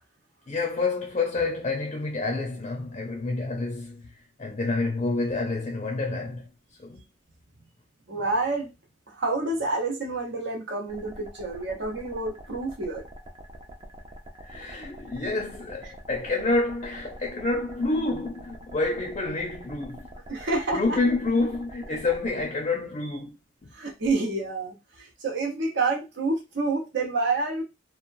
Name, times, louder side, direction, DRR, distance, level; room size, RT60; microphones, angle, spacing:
voice 1, 0.5-6.5 6.8-7.0 14.5-20.1 20.7-23.3, left 3 dB, 35° left, 0.5 m, -28 dB
voice 2, 8.1-8.7 9.1-13.1 20.3-21.0 23.7-27.6, right 3 dB, 70° right, 1.0 m, -28 dB
sound 1, 10.9-22.5, equal, 30° right, 0.5 m, -45 dB
3.0 x 2.1 x 2.5 m
head